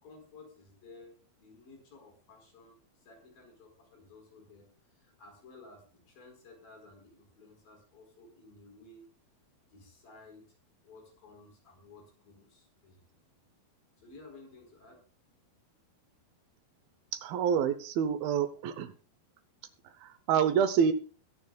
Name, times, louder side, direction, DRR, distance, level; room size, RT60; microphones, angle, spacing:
voice 1, 0.0-9.1 9.7-10.6 10.8-13.0 14.0-15.0, left 3 dB, 65° left, 2 dB, 6.2 m, -55 dB
voice 2, 17.1-18.9 19.8-20.9, right 7 dB, 75° right, 11 dB, 2.7 m, -28 dB
21.5 x 10.5 x 2.4 m, 0.38 s
omnidirectional pair, 4.4 m